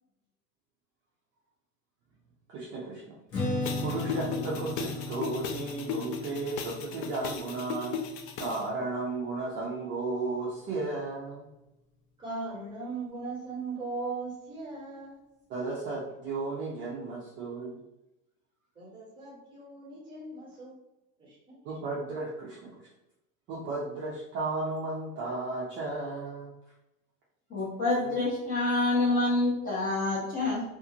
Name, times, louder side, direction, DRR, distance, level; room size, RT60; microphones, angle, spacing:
voice 1, 2.5-3.2 3.8-8.0 8.4-11.5 15.5-17.8 21.6-22.9 23.5-26.5 28.0-28.1, right 3 dB, 30° right, -6 dB, 0.5 m, -34 dB
Strum, 3.3-9.6, left 2 dB, 35° left, 1.1 m, -37 dB
sound 1, 3.6-8.6, left 6 dB, 50° left, 0.4 m, -37 dB
voice 2, 12.2-15.2 18.7-20.7 21.2-21.6, right 3 dB, 10° right, -6 dB, 1.1 m, -38 dB
voice 3, 27.5-30.6, left 2 dB, 20° left, -6 dB, 0.7 m, -27 dB
2.5 x 2.4 x 2.8 m, 0.93 s
supercardioid pair, 140°, 43 cm